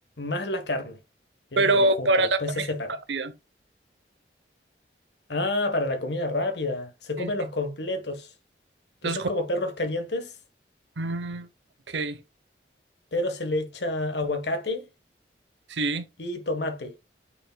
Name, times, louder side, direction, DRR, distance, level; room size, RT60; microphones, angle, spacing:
voice 1, 0.2-1.0 1.5-3.0 5.3-8.3 9.0-10.3 13.1-14.9 16.2-17.0, left 2 dB, 75° left, 1.4 m, -29 dB
voice 2, 1.6-2.7 3.1-3.3 7.2-7.3 9.0-9.3 11.0-11.5 11.9-12.2 15.7-16.0, right 2 dB, 90° right, 0.9 m, -24 dB
8.7 x 4.9 x 2.3 m
head